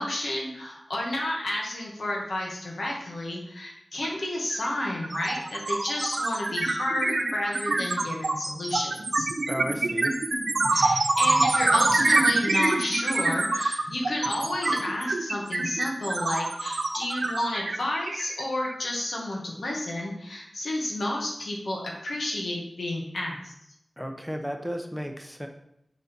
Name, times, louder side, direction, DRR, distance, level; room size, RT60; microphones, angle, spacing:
voice 1, 0.0-9.3 10.7-23.5, left 1 dB, 80° left, -1 dB, 1.7 m, -31 dB
sound 1, 4.0-4.2 4.5-18.8, right 2 dB, 65° right, 0.9 m, -25 dB
voice 2, 9.5-10.1 24.0-25.5, equal, ahead, 4 dB, 0.9 m, -33 dB
7.0 x 4.1 x 5.3 m, 0.79 s
wide cardioid pair, 60°, 0 cm